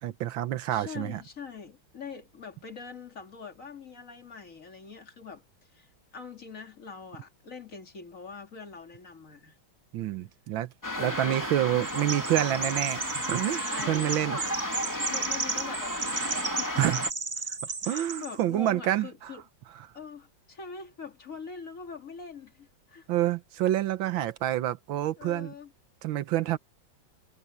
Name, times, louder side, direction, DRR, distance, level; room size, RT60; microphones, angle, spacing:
voice 1, 0.0-1.2 9.9-10.7 11.0-14.5 16.8-17.0 17.9-19.1 23.1-25.5 26.0-26.6, right 13 dB, 85° right, 1.6 m, -28 dB
voice 2, 0.7-5.4 5.7-9.6 11.0-11.4 12.5-12.8 13.5-14.5 14.9-16.9 17.4-19.4 19.9-23.1 24.2-24.3 25.2-25.7, left 5 dB, 45° left, 2.4 m, -44 dB
sound 1, 10.8-17.1, equal, 10° left, 2.9 m, -34 dB
Chirp tweet, 11.8-18.3, right 4 dB, 30° right, 0.7 m, -34 dB
omnidirectional pair, 2.1 m